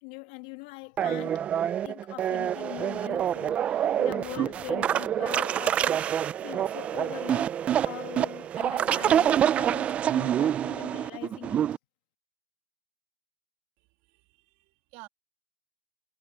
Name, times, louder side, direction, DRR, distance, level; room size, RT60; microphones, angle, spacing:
voice 1, 0.0-1.5 1.8-6.1 6.4-11.6, left 27 dB, 55° left, 1.5 m, -42 dB
sound 1, 1.0-11.8, right 10 dB, 25° right, 0.4 m, -27 dB
voice 2, 13.8-15.1, right 22 dB, 50° right, 2.3 m, -52 dB
supercardioid pair, 150°, 6 cm